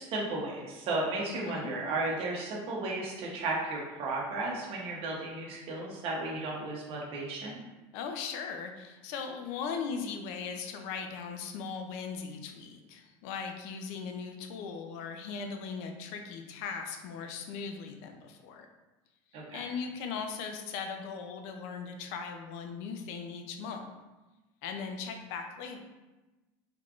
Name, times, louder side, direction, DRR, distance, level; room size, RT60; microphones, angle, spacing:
voice 1, 0.0-7.6 19.3-19.6, right 2 dB, 55° right, -2 dB, 0.9 m, -34 dB
voice 2, 1.3-1.7 7.9-18.7 19.5-23.9 24.6-25.8, left 5 dB, 70° left, 4 dB, 0.5 m, -39 dB
3.4 x 3.2 x 2.4 m, 1.1 s
supercardioid pair, 115°, 12 cm